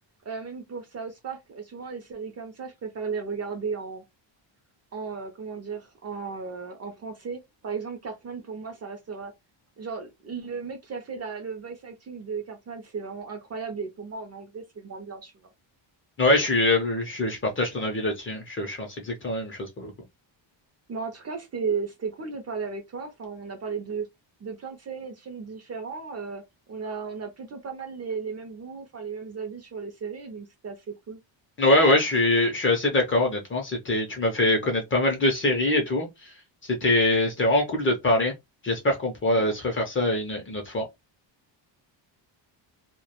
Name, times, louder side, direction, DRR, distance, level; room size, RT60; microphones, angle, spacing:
voice 1, 0.3-4.0 4.9-9.3 9.8-15.5 20.9-24.1 24.4-31.2 39.3-39.5, right 5 dB, 35° right, 0.4 m, -35 dB
voice 2, 16.2-19.9 31.6-36.3 36.6-38.3 38.6-40.9, left 1 dB, 25° left, 0.5 m, -23 dB
2.2 x 2.1 x 2.7 m
cardioid pair, 180°, 46 cm